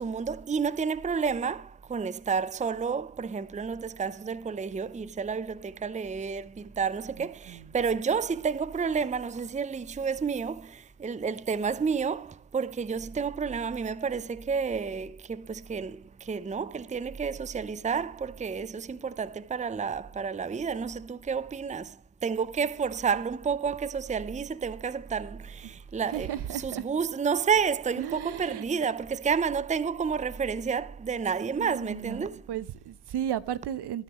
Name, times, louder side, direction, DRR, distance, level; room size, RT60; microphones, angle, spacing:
voice 1, 0.0-32.4, right 6 dB, 15° right, 0.7 m, -30 dB
voice 2, 7.1-7.7 25.6-26.9 28.0-28.7 31.6-34.0, right 10 dB, 60° right, 0.9 m, -35 dB
20.5 x 10.5 x 3.1 m
supercardioid pair, 60°, 44 cm